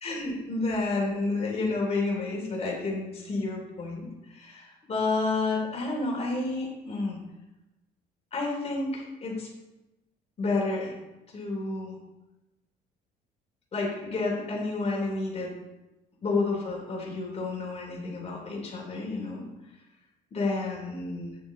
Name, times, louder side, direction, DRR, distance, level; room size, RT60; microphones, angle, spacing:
voice 1, 0.0-7.2 8.3-9.5 10.4-10.9 11.3-12.0 13.7-15.5 16.2-19.4 20.3-21.4, left 3 dB, 40° left, -1 dB, 3.1 m, -30 dB
9.4 x 7.0 x 3.8 m, 1.0 s
cardioid pair, 110°, 17 cm